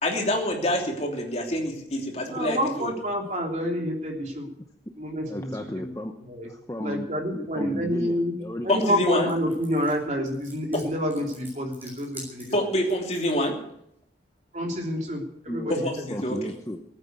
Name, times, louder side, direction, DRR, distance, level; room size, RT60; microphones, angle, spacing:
voice 1, 0.0-2.9 8.7-9.3 10.7-10.8 12.5-13.6 15.7-16.4, left 1 dB, 35° left, 1 dB, 3.0 m, -26 dB
voice 2, 2.3-4.5 5.0-5.5 5.8-5.9 6.3-6.5 6.8-8.3 8.6-12.5 14.5-15.8, equal, 40° right, 1 dB, 3.3 m, -28 dB
voice 3, 5.3-6.1 6.4-7.1 7.3-8.8 15.5-16.8, left 1 dB, 15° left, 5 dB, 0.8 m, -34 dB
sound 1, 9.3-13.4, right 1 dB, 10° right, 6.8 m, -46 dB
18.5 x 9.2 x 8.1 m, 0.75 s
head